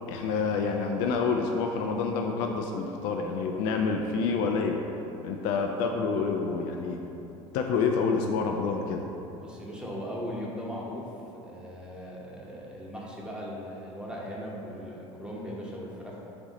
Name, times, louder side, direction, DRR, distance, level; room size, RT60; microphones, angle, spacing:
voice 1, 0.1-4.8 5.2-7.0 7.5-9.0, left 5 dB, 55° left, 2 dB, 0.4 m, -28 dB
voice 2, 9.4-16.2, equal, 5° right, -4 dB, 0.9 m, -38 dB
5.1 x 2.6 x 3.9 m, 2.9 s
figure-of-eight pair, 65°, 17 cm